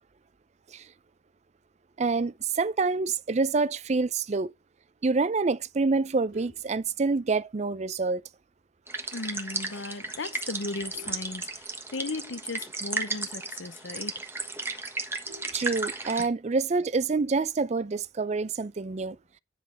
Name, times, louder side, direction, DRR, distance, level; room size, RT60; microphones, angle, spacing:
voice 1, 2.0-4.5 5.0-8.2 15.5-19.2, right 4 dB, 35° right, 0.4 m, -27 dB
Vehicle horn car horn honking, 6.0-7.5 8.0-8.2 8.5-8.6 9.1-9.2 9.4-9.8 10.4-12.2 12.6-12.7 12.9-13.0 13.5-13.6 13.9-14.0 14.3-16.3 17.5-17.9, right 1 dB, 80° right, 2.6 m, -54 dB
sound 1, 8.9-16.3, right 3 dB, 15° right, 1.3 m, -35 dB
voice 2, 9.1-11.6 11.9-14.2, left 3 dB, 75° left, 0.8 m, -36 dB
10.5 x 6.1 x 3.4 m
head